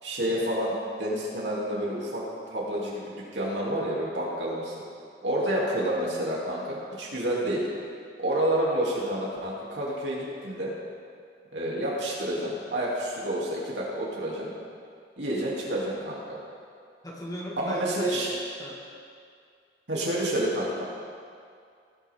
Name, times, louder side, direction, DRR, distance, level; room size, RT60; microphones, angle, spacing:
voice 1, 0.0-0.7 1.0-2.3 2.5-4.7 5.2-7.7 8.2-10.7 11.5-14.5 15.2-16.4 17.6-18.3 19.9-20.8, right 1 dB, 90° right, -5 dB, 3.1 m, -29 dB
voice 2, 17.0-18.8, equal, 20° left, -3 dB, 2.0 m, -39 dB
18.5 x 9.0 x 3.8 m, 2.3 s
head